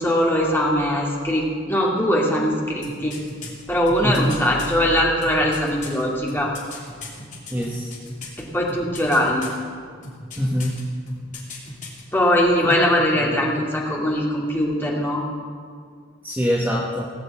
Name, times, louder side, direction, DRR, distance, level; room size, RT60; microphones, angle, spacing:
voice 1, 0.0-3.2 3.7-6.5 8.4-9.5 12.1-15.3, equal, 10° left, -3 dB, 2.1 m, -21 dB
sound 1, 2.8-4.7 5.2-8.4 8.7-9.6 10.0-10.8 11.1-12.0 12.3-12.4, left 3 dB, 40° left, 2.9 m, -37 dB
voice 2, 7.5-8.0 10.4-10.8 12.6-12.7 13.2-13.4 16.2-17.1, equal, 10° right, -3 dB, 1.3 m, -24 dB
18.5 x 6.6 x 8.2 m, 2.1 s
head